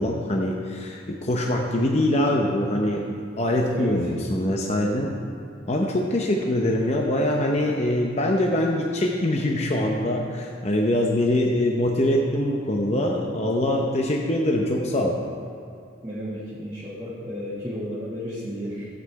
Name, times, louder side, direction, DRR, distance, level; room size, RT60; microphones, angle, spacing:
voice 1, 0.0-5.1 5.7-15.2, left 1 dB, 35° left, 0 dB, 0.7 m, -23 dB
voice 2, 16.0-18.9, equal, 20° right, -9 dB, 1.5 m, -33 dB
13.0 x 8.4 x 4.7 m, 2.6 s
head